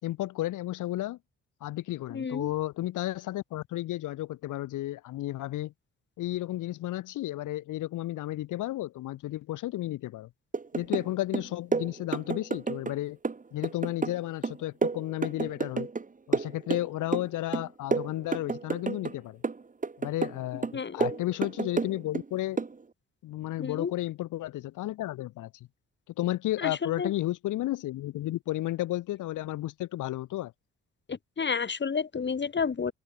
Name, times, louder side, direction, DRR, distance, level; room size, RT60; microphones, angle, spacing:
voice 1, 0.0-1.2 1.6-5.7 6.2-10.3 10.7-13.2 13.5-15.9 16.3-19.4 20.0-22.6 23.2-25.5 26.2-30.5, left 15 dB, 90° left, 4.9 m, -33 dB
voice 2, 2.1-2.5 20.7-21.0 23.6-23.9 26.6-27.1 31.1-32.9, left 6 dB, 35° left, 3.2 m, -31 dB
sound 1, 10.5-11.1 11.3-13.0 13.2-16.0 16.3-17.3 17.5-19.1 19.4-20.4 20.6-22.2 22.6-22.7, right 4 dB, 25° right, 2.9 m, -30 dB
cardioid pair, 90°, 30 cm